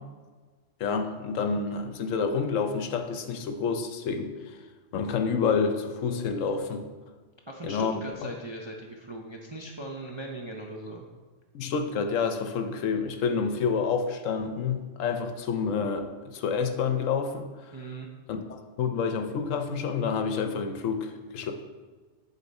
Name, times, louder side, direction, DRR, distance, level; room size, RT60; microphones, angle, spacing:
voice 1, 0.8-4.3 4.9-6.9 7.6-8.3 11.5-17.7 18.3-21.5, left 5 dB, 75° left, 6 dB, 1.0 m, -28 dB
voice 2, 7.5-11.1 17.7-18.1, right 2 dB, 35° right, 0 dB, 0.4 m, -39 dB
10.5 x 4.2 x 4.1 m, 1.4 s
omnidirectional pair, 1.4 m